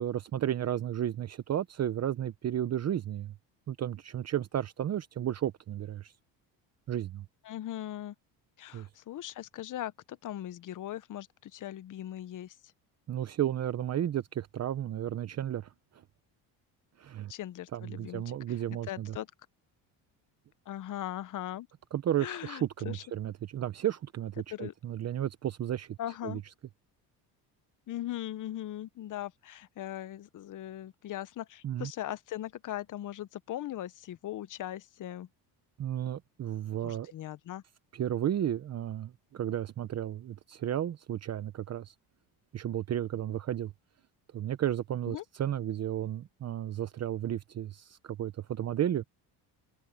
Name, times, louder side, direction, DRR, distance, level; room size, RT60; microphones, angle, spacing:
voice 1, 0.0-3.3 3.7-6.1 6.9-7.2 8.7-8.9 13.1-16.0 17.0-17.3 17.7-19.2 21.9-26.0 26.2-26.4 31.6-31.9 35.8-37.1 37.9-41.9 42.5-43.7 44.3-49.0, right 11 dB, 40° right, 0.9 m, -33 dB
voice 2, 7.4-8.1 8.6-12.5 17.3-18.2 18.9-19.3 20.7-21.7 22.2-23.0 24.5-24.7 26.0-26.4 27.9-35.3 36.8-37.6 45.1-45.2, left 13 dB, 50° left, 0.9 m, -39 dB
cardioid pair, 115°, 40 cm